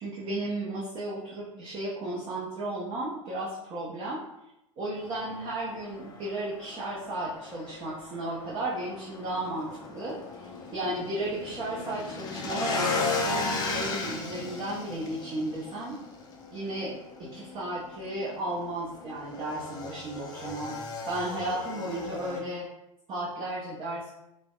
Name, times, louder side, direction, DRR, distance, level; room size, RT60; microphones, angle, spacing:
voice 1, 0.0-4.2 4.8-16.0 16.5-16.9 17.2-20.8 21.0-22.7 23.1-24.1, right 1 dB, 30° right, -7 dB, 0.6 m, -34 dB
Motorcycle / Engine, 5.0-22.4, left 3 dB, 25° left, 0.3 m, -36 dB
2.5 x 2.1 x 2.3 m, 0.87 s
figure-of-eight pair, 85°, 17 cm